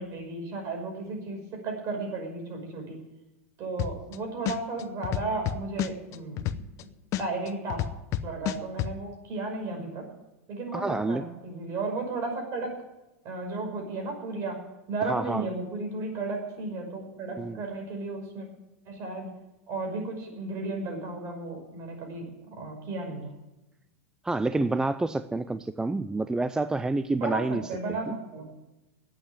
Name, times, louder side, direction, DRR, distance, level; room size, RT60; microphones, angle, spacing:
voice 1, 0.0-3.0 3.6-6.6 7.2-7.9 8.2-10.1 10.5-12.7 13.2-14.6 14.9-18.5 18.9-19.3 19.7-23.3 27.2-28.5, right 3 dB, 45° right, 3 dB, 5.7 m, -34 dB
sound 1, 3.8-4.2 4.5-6.8 7.1-8.9, left 12 dB, 45° left, 0.8 m, -29 dB
voice 2, 10.7-11.2 15.1-15.5 17.4-17.6 24.2-27.6 28.1-28.2, right 2 dB, 10° right, 12 dB, 0.4 m, -28 dB
11.5 x 8.8 x 9.9 m, 0.99 s
hypercardioid pair, 110°, 8 cm